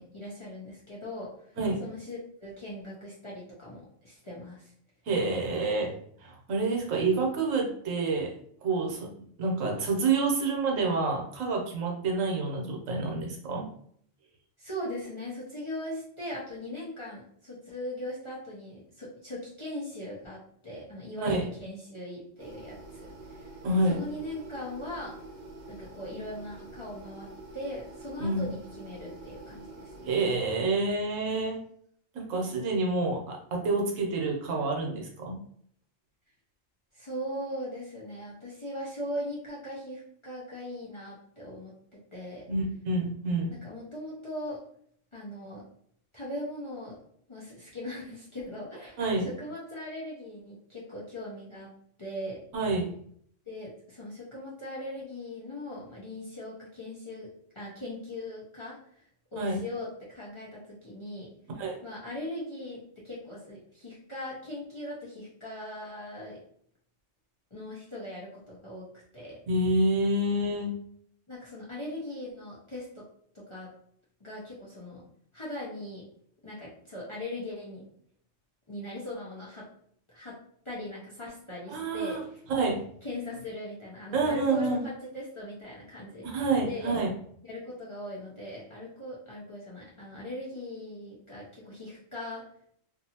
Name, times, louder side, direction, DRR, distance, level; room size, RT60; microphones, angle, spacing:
voice 1, 0.0-4.7 14.6-23.6 23.9-25.1 25.7-27.3 27.5-30.1 36.9-41.7 42.1-42.4 43.6-44.6 45.1-45.6 46.1-47.0 47.3-51.7 52.0-52.4 53.5-57.3 57.5-59.1 59.3-61.3 61.8-66.4 67.5-68.9 69.1-69.4 71.3-73.0 73.3-73.7 74.2-75.0 75.3-76.0 76.4-77.8 78.7-79.7 80.1-80.4 80.6-82.4 83.0-86.3 86.7-87.0 87.4-92.4, left 1 dB, 30° left, -7 dB, 0.6 m, -39 dB
voice 2, 5.1-5.9 6.2-8.3 8.6-13.6 21.2-21.4 23.6-24.0 28.2-28.5 30.1-31.6 32.1-35.4 42.5-43.5 49.0-49.2 52.5-52.9 59.4-59.6 61.6-61.8 69.5-70.7 81.7-82.2 82.5-82.8 84.1-84.8 86.2-87.1, right 3 dB, 85° right, 1 dB, 1.1 m, -28 dB
sound 1, 22.4-30.4, right 2 dB, 65° right, 0.4 m, -46 dB
2.6 x 2.5 x 2.8 m, 0.64 s
omnidirectional pair, 1.3 m